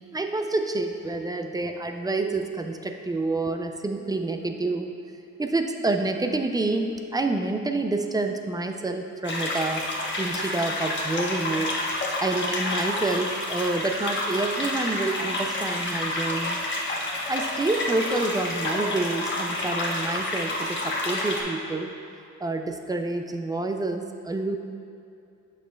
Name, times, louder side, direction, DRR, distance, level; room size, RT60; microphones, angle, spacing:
voice 1, 0.1-4.9 5.4-9.8 10.2-11.7 12.2-16.6 17.3-21.9 22.4-24.6, right 2 dB, 15° right, 5 dB, 0.3 m, -28 dB
sound 1, 9.2-21.4, left 1 dB, 40° left, 1.1 m, -29 dB
7.3 x 6.4 x 2.3 m, 2.6 s
cardioid pair, 90°, 30 cm